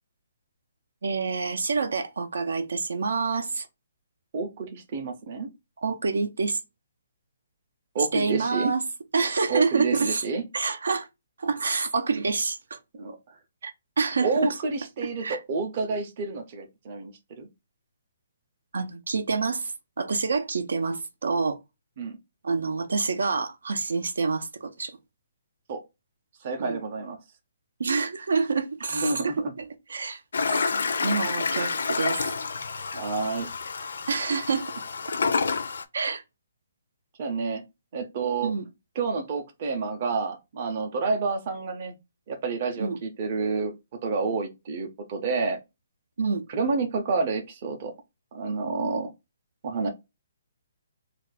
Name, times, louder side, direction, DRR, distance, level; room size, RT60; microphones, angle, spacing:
voice 1, 1.0-3.6 5.8-6.6 8.1-8.8 9.1-10.2 10.5-11.1 11.4-12.8 13.6-14.5 15.2-15.4 18.7-21.6 22.4-25.0 26.6-26.8 27.8-30.2 30.5-30.7 31.0-32.3 34.1-34.7 35.9-36.2 38.4-38.6 42.8-43.0 46.2-46.5, right 4 dB, 85° right, 0.5 m, -27 dB
voice 2, 4.3-5.5 7.9-8.7 9.5-10.4 12.9-13.2 14.2-17.1 17.4-17.5 22.0-22.2 25.7-25.8 26.4-27.2 28.9-29.5 32.9-33.5 37.2-37.6 37.9-38.5 39.0-42.0 42.3-43.7 44.0-45.6 46.5-47.9 48.3-49.1 49.6-49.9, right 4 dB, 30° right, 0.5 m, -29 dB
Toilet flush, 30.3-35.8, left 4 dB, 70° left, 0.4 m, -28 dB
2.4 x 2.2 x 4.0 m
hypercardioid pair, 175°, 0 cm